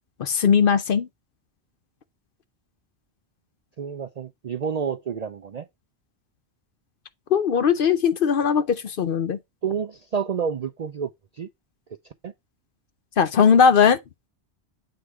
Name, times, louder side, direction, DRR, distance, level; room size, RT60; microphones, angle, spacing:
voice 1, 0.2-1.1 7.3-9.4 13.2-14.0, left 6 dB, 60° left, 0.7 m, -19 dB
voice 2, 3.8-5.7 9.6-11.5 12.2-12.3, right 6 dB, 55° right, 0.4 m, -29 dB
7.8 x 3.3 x 4.7 m
omnidirectional pair, 1.2 m